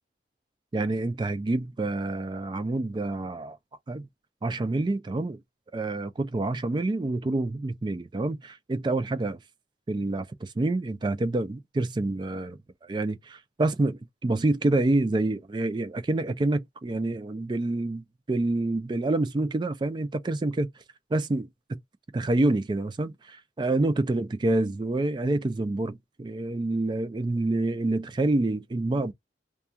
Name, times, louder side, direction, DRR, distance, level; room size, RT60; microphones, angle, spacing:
voice 1, 0.7-3.6 3.9-4.1 4.4-5.4 5.7-9.4 9.9-20.7 21.1-21.5 22.1-29.1, right 2 dB, 25° right, 0.3 m, -27 dB
2.3 x 2.3 x 2.7 m
head